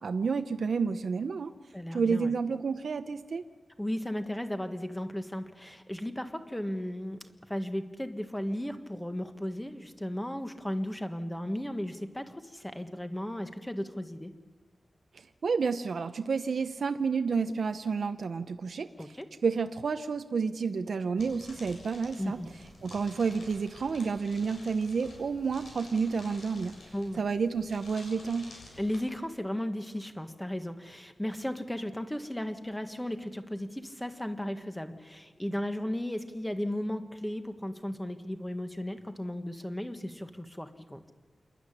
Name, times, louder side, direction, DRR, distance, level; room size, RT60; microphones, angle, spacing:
voice 1, 0.0-1.5 1.9-3.4 15.1-19.1 19.4-22.4 22.8-26.8 27.2-28.5, right 5 dB, 70° right, 9 dB, 0.7 m, -30 dB
voice 2, 1.7-2.3 3.8-14.3 19.0-19.3 22.2-22.5 26.9-27.2 28.8-41.0, left 1 dB, 5° left, 7 dB, 1.4 m, -35 dB
sound 1, 21.2-29.0, left 2 dB, 90° left, 7.2 m, -51 dB
27.5 x 11.5 x 10.0 m, 1.5 s
wide cardioid pair, 125°, 0 cm